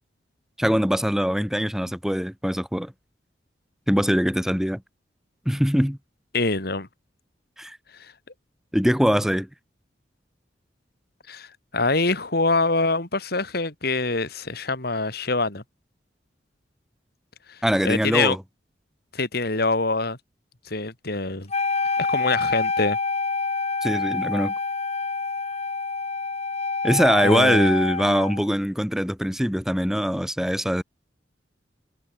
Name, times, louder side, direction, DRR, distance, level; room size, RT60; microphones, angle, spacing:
voice 1, 0.6-2.9 3.9-4.8 5.5-6.0 7.6-7.8 8.7-9.5 17.6-18.4 23.8-24.5 26.8-30.8, equal, 5° right, 2.0 m, -22 dB
voice 2, 6.3-6.9 8.0-8.1 11.3-11.5 11.7-15.6 17.5-18.4 19.1-20.2 20.7-21.5 22.0-23.0 27.2-27.7, left 3 dB, 60° left, 3.5 m, -25 dB
Wind instrument woodwind instrument, 21.5-28.5, left 4 dB, 40° left, 6.3 m, -27 dB
head